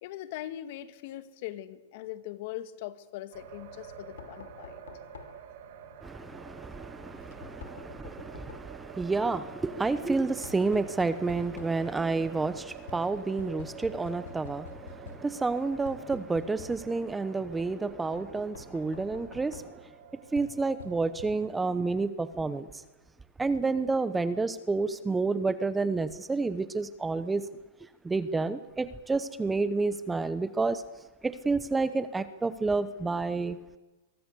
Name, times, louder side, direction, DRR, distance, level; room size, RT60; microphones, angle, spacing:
voice 1, 0.0-4.8, left 13 dB, 50° left, 12 dB, 1.9 m, -41 dB
Knock, 3.3-21.8, left 6 dB, 85° left, 5.1 m, -50 dB
sound 1, 3.3-21.7, right 9 dB, 50° right, 3.0 m, -49 dB
voice 2, 6.0-19.8 20.3-22.8 23.4-27.4 28.0-30.8 31.2-33.6, right 3 dB, 10° right, 13 dB, 0.9 m, -30 dB
24.0 x 23.0 x 8.3 m, 1.1 s
supercardioid pair, 160°, 0 cm